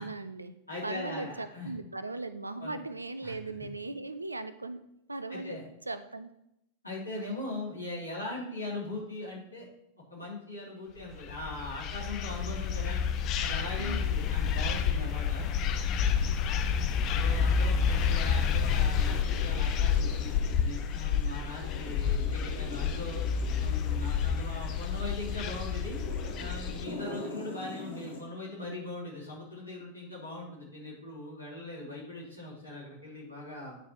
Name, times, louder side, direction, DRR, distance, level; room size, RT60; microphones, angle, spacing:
voice 1, 0.0-0.6 0.8-4.8 5.1-5.6 5.9-6.3 13.8-14.2, right 2 dB, 80° right, 12 dB, 0.4 m, -38 dB
voice 2, 0.7-1.7 2.6-2.8 3.2-3.3 5.3-5.6 6.8-9.6 10.1-13.0 13.4-15.5 16.0-16.3 17.1-23.2 23.6-26.0 26.4-33.8, left 2 dB, 80° left, -5 dB, 2.9 m, -40 dB
sound 1, 11.1-26.8, left 7 dB, 35° left, 0.6 m, -29 dB
sound 2, 18.6-28.2, left 2 dB, 65° left, 1.3 m, -44 dB
10.0 x 4.5 x 3.0 m, 0.81 s
figure-of-eight pair, 90°, 0 cm